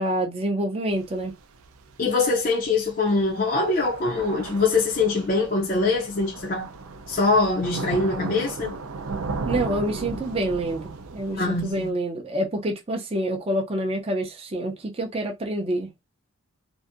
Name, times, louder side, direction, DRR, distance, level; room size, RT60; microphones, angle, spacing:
voice 1, 0.0-1.3 9.5-15.9, right 1 dB, 25° right, 0.5 m, -27 dB
Thunder / Rain, 0.9-11.9, right 3 dB, 80° right, 0.5 m, -36 dB
voice 2, 2.0-6.7 7.1-8.8 11.3-11.9, left 3 dB, 40° left, 0.4 m, -23 dB
2.6 x 2.5 x 2.4 m
head